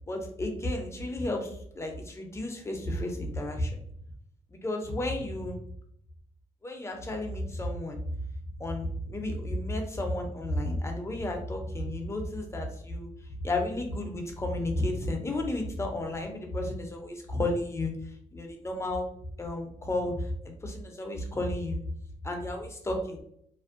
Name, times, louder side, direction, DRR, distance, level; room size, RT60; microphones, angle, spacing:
voice 1, 0.1-3.7 4.5-5.6 6.6-8.0 8.6-19.0 19.4-20.3 20.6-21.8 22.2-23.2, left 1 dB, 20° left, 2 dB, 0.5 m, -32 dB
2.5 x 2.1 x 2.5 m, 0.68 s
cardioid pair, 100°, 13 cm